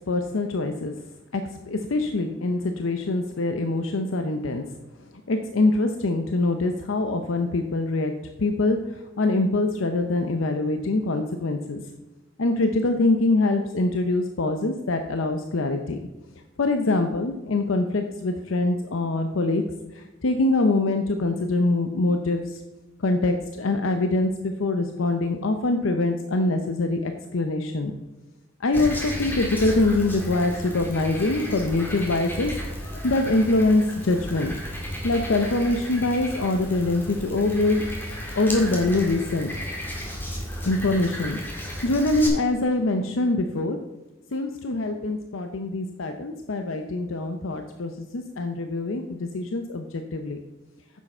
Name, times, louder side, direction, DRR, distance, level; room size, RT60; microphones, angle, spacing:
voice 1, 0.1-0.9 1.3-4.6 5.3-8.1 8.4-11.8 12.4-16.0 16.6-19.6 19.9-22.6 23.0-27.9 28.6-32.5 33.0-34.5 35.0-37.8 38.4-39.5 40.6-41.4 41.8-43.8 44.3-50.4, left 2 dB, 85° left, 6 dB, 0.7 m, -24 dB
Frog, 28.7-42.3, equal, 10° left, 2.0 m, -34 dB
9.7 x 7.4 x 4.4 m, 1.0 s
head